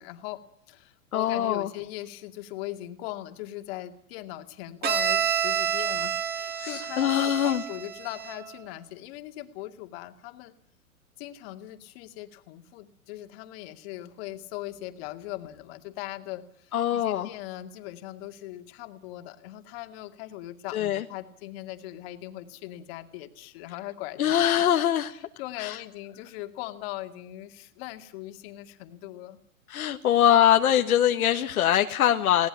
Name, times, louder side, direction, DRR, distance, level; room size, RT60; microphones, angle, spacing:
voice 1, 0.0-10.5 11.2-24.3 24.6-24.8 25.1-29.4, left 15 dB, 45° left, 6 dB, 2.4 m, -40 dB
voice 2, 1.1-1.7 6.6-7.6 16.7-17.3 20.7-21.0 24.2-25.1 25.6-25.8 29.7-32.5, left 10 dB, 75° left, 6 dB, 1.5 m, -23 dB
Bowed string instrument, 4.8-8.6, right 8 dB, 20° right, 1.7 m, -29 dB
21.0 x 18.0 x 9.9 m, 0.65 s
hypercardioid pair, 140°, 43 cm